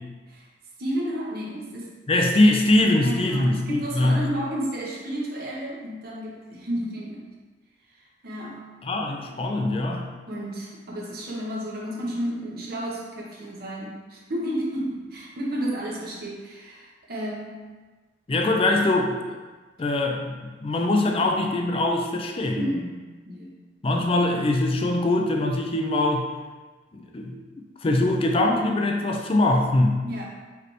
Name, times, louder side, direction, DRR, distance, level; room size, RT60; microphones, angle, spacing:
voice 1, 0.8-1.9 3.0-7.3 7.9-8.6 10.3-17.7 22.5-23.0 23.2-23.5 30.0-30.2, equal, 60° right, -3 dB, 1.0 m, -32 dB
voice 2, 2.1-4.2 8.8-10.1 18.3-19.4 19.8-22.7 23.8-26.3 26.9-27.4 27.8-30.1, left 2 dB, 30° left, 2 dB, 0.4 m, -22 dB
4.9 x 3.0 x 3.2 m, 1.3 s
head